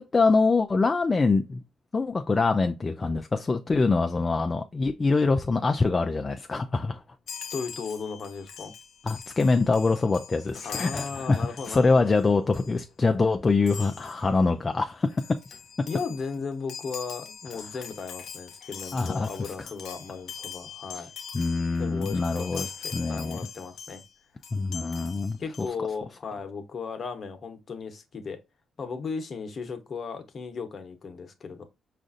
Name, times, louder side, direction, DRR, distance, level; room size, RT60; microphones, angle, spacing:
voice 1, 0.0-1.6 1.9-7.0 9.0-15.4 18.9-19.3 20.9-21.1 21.3-23.4 24.5-25.7, left 3 dB, 30° left, 0.3 m, -24 dB
Chime, 7.3-12.2 12.5-12.8 13.7-14.3 14.8-14.9 15.1-24.1 24.4-25.7, left 7 dB, 70° left, 0.7 m, -42 dB
voice 2, 7.5-8.7 10.6-12.4 15.9-21.1 21.8-24.0 25.4-28.4 28.8-31.6, left 5 dB, 45° left, 0.9 m, -36 dB
5.0 x 2.5 x 2.5 m
cardioid pair, 90°, 0 cm